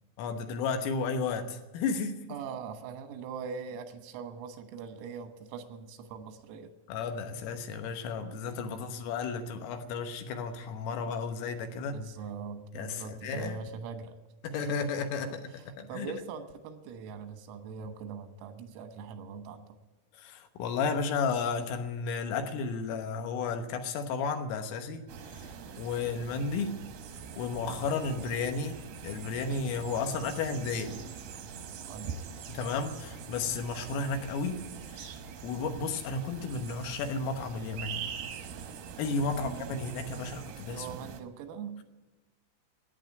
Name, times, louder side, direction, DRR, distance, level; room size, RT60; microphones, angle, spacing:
voice 1, 0.2-2.2 6.9-12.0 12.8-13.6 14.4-15.5 15.8-16.1 20.2-25.0 25.3-26.8 27.4-28.7 29.0-30.9 32.5-34.6 34.9-35.1 35.4-38.1 39.0-40.9, left 4 dB, 80° left, 6 dB, 3.7 m, -33 dB
voice 2, 2.3-6.7 8.7-8.9 11.9-14.2 14.5-14.8 15.3-15.4 15.8-19.7 31.9-32.3 39.3-39.8 40.7-41.8, right 6 dB, 90° right, 7 dB, 4.0 m, -42 dB
sound 1, 25.1-41.2, right 7 dB, 75° right, 2.2 m, -43 dB
14.0 x 9.8 x 9.1 m, 1.2 s
omnidirectional pair, 6.0 m